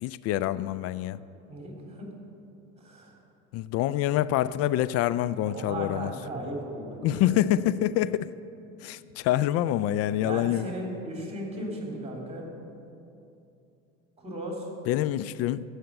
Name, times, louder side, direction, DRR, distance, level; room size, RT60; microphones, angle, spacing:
voice 1, 0.0-1.2 3.5-6.1 7.0-8.3 8.8-10.7 14.9-15.6, left 13 dB, 40° left, 16 dB, 0.4 m, -26 dB
voice 2, 1.5-2.1 2.8-3.2 5.4-7.5 10.2-12.5 14.2-14.7, right 1 dB, 15° right, 0 dB, 3.4 m, -36 dB
14.5 x 6.5 x 7.9 m, 2.7 s
hypercardioid pair, 75°, 39 cm